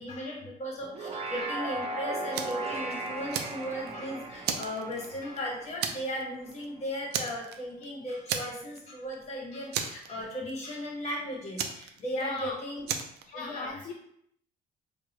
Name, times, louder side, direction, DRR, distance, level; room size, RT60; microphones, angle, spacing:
voice 1, 0.0-12.9 13.3-13.7, equal, 40° left, -2 dB, 1.4 m, -36 dB
sound 1, 0.8-6.3, right 2 dB, 40° right, 0.9 m, -37 dB
Fire, 2.3-2.7 3.1-4.0 4.4-5.4 5.8-6.2 6.5-6.7 7.1-7.8 8.3-8.9 9.1-9.2 9.7-10.5 11.6-12.4 12.9-13.2, right 7 dB, 80° right, 0.5 m, -33 dB
voice 2, 12.2-12.6 13.3-13.9, left 4 dB, 55° left, 2 dB, 0.5 m, -37 dB
4.6 x 2.5 x 3.0 m, 0.73 s
cardioid pair, 110°, 17 cm